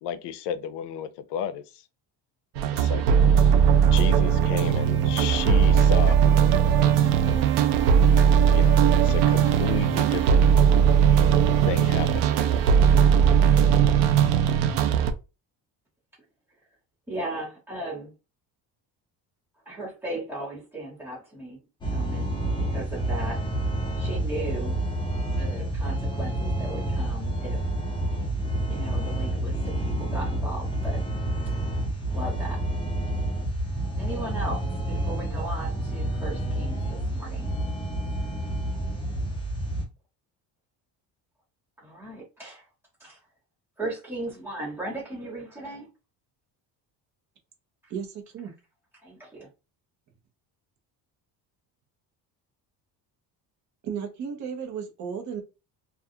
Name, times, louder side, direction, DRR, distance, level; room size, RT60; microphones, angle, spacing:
voice 1, 0.0-1.6 2.7-3.0 3.9-7.4 7.8-7.9 8.5-10.4 11.7-12.6, left 9 dB, 80° left, 0.5 m, -33 dB
sound 1, 2.6-15.1, right 8 dB, 80° right, 0.5 m, -19 dB
voice 2, 17.1-18.1 19.6-21.6 21.9-23.5 24.0-24.8 25.3-27.7 28.7-31.0 32.1-32.6 34.0-37.5 41.8-42.7 43.0-43.2 43.8-45.9 49.0-49.5, right 1 dB, 5° right, 1.2 m, -37 dB
sound 2, 21.8-39.9, right 1 dB, 10° left, 0.4 m, -29 dB
voice 3, 47.9-48.5 53.8-55.4, right 7 dB, 45° right, 0.7 m, -34 dB
2.3 x 2.3 x 2.7 m
cardioid pair, 170°, 41 cm